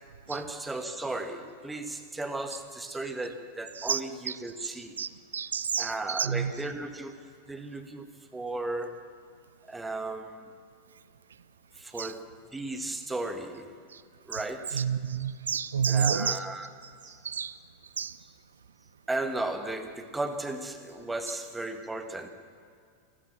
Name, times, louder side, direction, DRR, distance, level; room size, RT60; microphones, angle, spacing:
voice 1, 0.3-5.0 5.8-7.2 7.5-9.0 9.7-10.4 11.8-13.7 14.3-14.9 15.9-16.7 17.0-17.2 19.1-22.3, right 2 dB, 10° right, 7 dB, 1.8 m, -35 dB
voice 2, 5.0-6.5 12.0-12.1 14.7-16.4 17.2-17.5 18.0-18.1, right 7 dB, 70° right, 18 dB, 0.7 m, -29 dB
27.5 x 15.5 x 7.4 m, 2.3 s
figure-of-eight pair, 90°, 0 cm